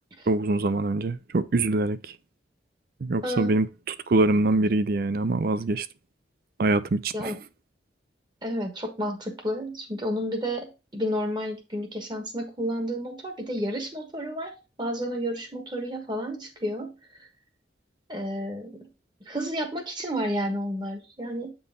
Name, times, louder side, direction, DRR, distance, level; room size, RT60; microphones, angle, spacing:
voice 1, 0.3-2.1 3.0-5.9 6.6-7.4, right 2 dB, 50° right, 0.4 m, -24 dB
voice 2, 8.4-14.5 14.8-16.9 18.1-18.9 19.3-21.5, equal, 25° right, 1.2 m, -31 dB
8.2 x 3.9 x 3.7 m
head